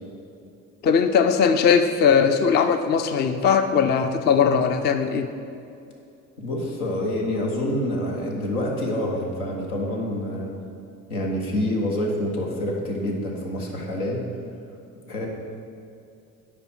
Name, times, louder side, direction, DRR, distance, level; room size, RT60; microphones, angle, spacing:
voice 1, 0.8-5.3, left 6 dB, 25° left, 8 dB, 0.4 m, -19 dB
voice 2, 6.4-10.5 11.1-14.3 15.1-15.3, left 1 dB, 80° left, -1 dB, 1.2 m, -27 dB
8.7 x 4.8 x 4.4 m, 2.6 s
hypercardioid pair, 55°, 43 cm